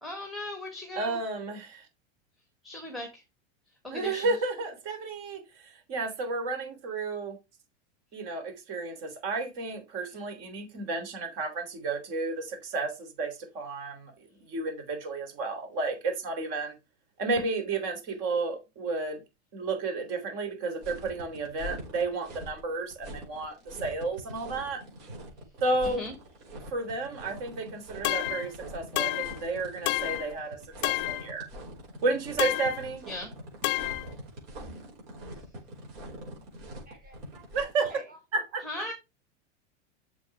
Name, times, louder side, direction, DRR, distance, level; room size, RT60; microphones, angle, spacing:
voice 1, 0.0-1.2 2.6-3.2 3.8-4.3 25.9-26.1 33.1-33.3 38.7-38.9, left 1 dB, ahead, 1.6 m, -38 dB
voice 2, 0.9-1.9 3.9-7.4 8.1-14.1 14.5-16.7 17.2-19.2 19.5-24.8 25.6-26.0 26.7-30.6 30.8-31.5 32.0-33.0 37.5-38.0 38.3-38.9, right 3 dB, 45° right, 3.4 m, -32 dB
sound 1, 20.8-37.9, equal, 65° right, 5.5 m, -44 dB
sound 2, 28.0-28.5 29.0-29.4 29.9-30.3 30.8-31.3 32.4-32.8 33.6-34.1, left 20 dB, 40° left, 0.4 m, -29 dB
voice 3, 36.9-38.2, right 1 dB, 25° right, 2.2 m, -50 dB
7.9 x 7.3 x 3.5 m
supercardioid pair, 135°, 36 cm